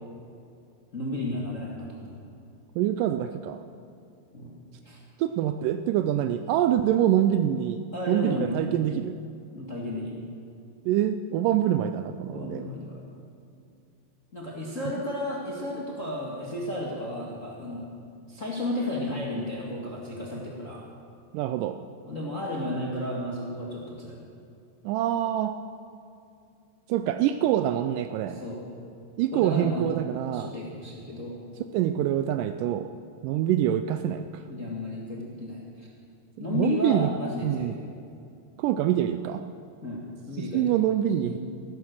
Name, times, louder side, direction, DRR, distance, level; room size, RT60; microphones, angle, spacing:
voice 1, 0.9-2.2 4.3-4.5 4.8-5.0 7.9-8.7 9.5-10.2 12.3-13.1 14.3-17.9 18.3-20.8 22.0-24.2 28.3-28.6 29.3-29.9 30.3-31.4 34.5-35.9 36.4-37.7 39.8-40.7 41.2-41.4, left 1 dB, 40° left, -3 dB, 1.1 m, -33 dB
voice 2, 2.8-3.6 5.2-9.2 10.9-12.7 21.3-21.8 24.8-25.6 26.9-28.4 29.2-30.5 31.7-32.9 33.2-34.4 36.4-37.1 37.4-37.7 38.6-39.4 40.4-41.4, right 11 dB, 85° right, 9 dB, 1.9 m, -25 dB
14.5 x 13.0 x 6.4 m, 2.5 s
omnidirectional pair, 4.3 m